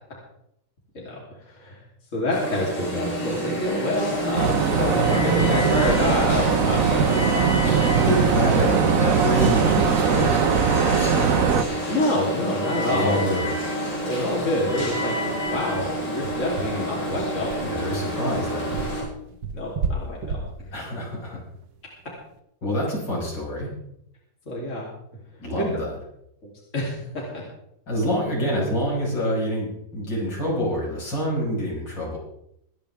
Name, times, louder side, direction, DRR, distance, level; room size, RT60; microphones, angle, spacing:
voice 1, 0.9-1.8 2.1-7.8 11.9-13.2 13.9-15.2 15.5-17.5 19.5-20.4 20.7-20.8 24.5-24.9 25.6-25.7 26.7-27.4, left 1 dB, 40° left, -4 dB, 3.7 m, -27 dB
Alarm, 2.3-19.0, right 1 dB, 90° left, 8.1 m, -28 dB
sound 1, 4.4-11.6, right 7 dB, 50° right, 1.3 m, -21 dB
voice 2, 7.9-11.4 12.9-13.6 17.6-18.7 20.7-21.4 22.6-23.7 25.4-25.9 27.9-32.2, equal, 70° left, -4 dB, 6.2 m, -26 dB
sound 2, 12.0-12.1 12.3-12.4 12.7-12.9 13.3-13.4 13.8-22.2, right 4 dB, 80° right, 2.0 m, -34 dB
23.5 x 10.5 x 3.6 m, 0.76 s
omnidirectional pair, 2.0 m